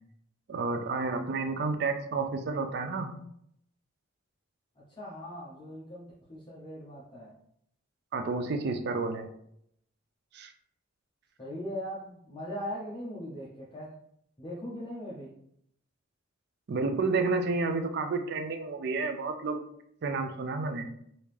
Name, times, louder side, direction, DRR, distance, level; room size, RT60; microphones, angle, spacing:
voice 1, 0.5-3.2 8.1-9.3 10.3-10.5 16.7-19.6 20.0-20.9, right 3 dB, 50° right, 7 dB, 0.4 m, -30 dB
voice 2, 4.9-7.4 11.4-14.0 14.4-15.4, equal, 25° left, -7 dB, 0.6 m, -40 dB
3.4 x 2.7 x 3.2 m, 0.71 s
head